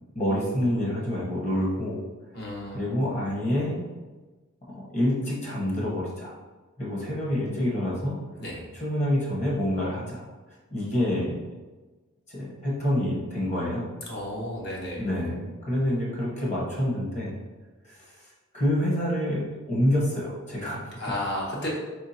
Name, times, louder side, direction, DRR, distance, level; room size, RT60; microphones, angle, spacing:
voice 1, 0.1-2.0 2.7-3.8 4.6-6.3 6.8-8.3 8.7-10.2 10.7-11.4 12.3-13.9 15.0-17.3 17.8-18.1 18.5-21.0, equal, 35° left, -5 dB, 1.1 m, -27 dB
voice 2, 2.3-2.8 8.4-8.6 14.1-15.0 21.0-21.7, left 1 dB, 55° left, -4 dB, 1.0 m, -32 dB
3.6 x 3.4 x 2.8 m, 1.2 s
head